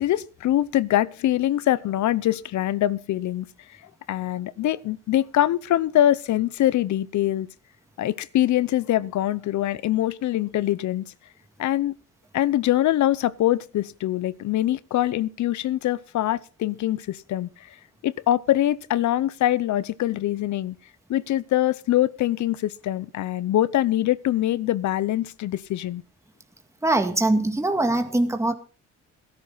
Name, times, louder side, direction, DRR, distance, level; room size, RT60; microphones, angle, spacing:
voice 1, 0.0-3.5 4.1-7.5 8.0-11.1 11.6-11.9 12.3-17.7 18.0-20.8 21.1-26.0, left 13 dB, 70° left, 0.8 m, -23 dB
voice 2, 26.8-28.5, right 2 dB, 10° right, 2.0 m, -22 dB
18.0 x 11.5 x 4.0 m
cardioid pair, 90°, 30 cm